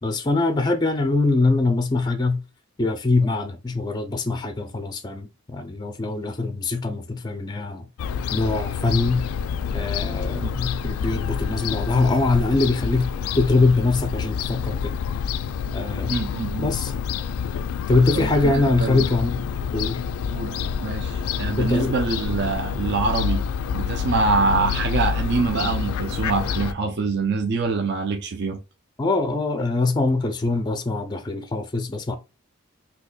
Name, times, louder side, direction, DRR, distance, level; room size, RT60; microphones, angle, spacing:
voice 1, 0.0-2.4 2.8-7.9 8.3-9.3 9.7-15.0 15.7-16.2 16.6-16.9 17.9-19.5 19.7-20.0 21.5-22.0 29.0-32.2, left 3 dB, 20° left, 0.4 m, -23 dB
Fowl / Gull seagull, 8.0-26.7, left 7 dB, 85° left, 0.3 m, -27 dB
voice 2, 16.1-16.7 18.1-19.1 20.3-23.4 23.7-28.6, right 4 dB, 50° right, 0.5 m, -25 dB
4.0 x 2.8 x 2.2 m
head